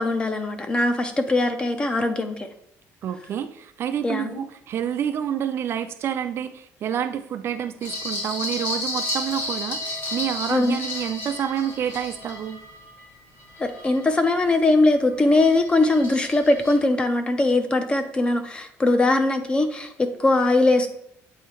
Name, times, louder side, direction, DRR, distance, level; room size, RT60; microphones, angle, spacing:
voice 1, 0.0-2.5 4.0-4.3 10.5-10.8 13.6-20.9, left 2 dB, 15° left, 8 dB, 0.5 m, -21 dB
voice 2, 3.0-12.6, right 9 dB, 45° right, 9 dB, 0.4 m, -28 dB
sound 1, 7.8-14.5 14.9-16.7, left 1 dB, 50° left, 2.4 m, -33 dB
8.2 x 2.8 x 4.4 m, 0.75 s
cardioid pair, 155°, 6 cm